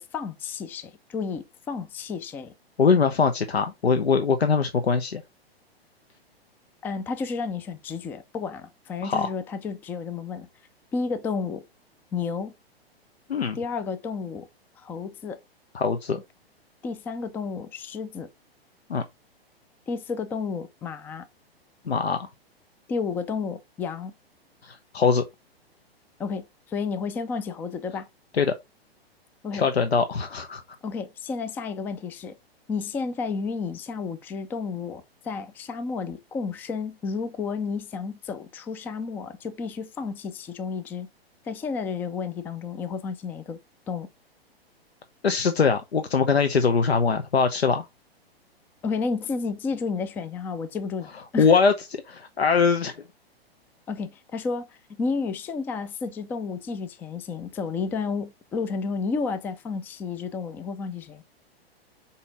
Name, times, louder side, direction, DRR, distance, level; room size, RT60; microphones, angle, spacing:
voice 1, 0.0-2.5 6.8-10.5 10.9-11.6 12.1-12.5 13.6-14.5 14.8-15.4 16.8-18.3 19.9-21.3 22.9-24.1 26.2-28.1 29.4-29.7 30.8-32.4 32.7-41.1 41.5-43.6 43.9-44.1 48.8-51.5 53.9-61.2, left 5 dB, 5° left, 0.3 m, -31 dB
voice 2, 2.8-5.2 9.0-9.3 13.3-13.6 15.7-16.2 18.9-19.0 21.9-22.2 24.6-25.2 28.4-28.5 29.5-30.6 45.2-47.9 51.4-52.9, left 5 dB, 80° left, 0.9 m, -22 dB
5.5 x 4.3 x 4.0 m
figure-of-eight pair, 110°, 31 cm